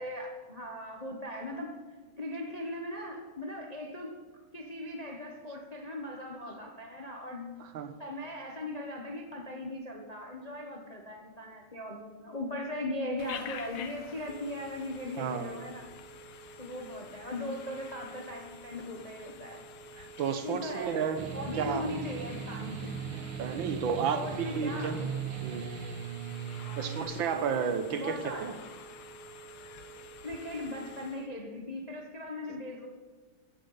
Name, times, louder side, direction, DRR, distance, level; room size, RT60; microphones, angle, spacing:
voice 1, 0.0-1.8 2.2-4.2 4.5-7.5 8.0-15.9 16.6-19.6 20.4-21.0 21.3-23.0 23.2-23.6 24.1-25.0 26.6-27.6 28.0-28.5 30.2-32.9, left 1 dB, 25° left, 1 dB, 1.1 m, -39 dB
voice 2, 7.6-8.0 15.2-15.6 20.0-21.2 21.6-21.9 23.4-25.1 25.4-25.7 26.8-28.6, right 7 dB, 70° right, 9 dB, 1.8 m, -32 dB
Telephone, 13.2-31.3, left 2 dB, 85° left, 1.8 m, -48 dB
sound 1, 21.2-27.0, right 6 dB, 85° right, 1.9 m, -38 dB
16.0 x 10.5 x 5.6 m, 1.4 s
omnidirectional pair, 2.3 m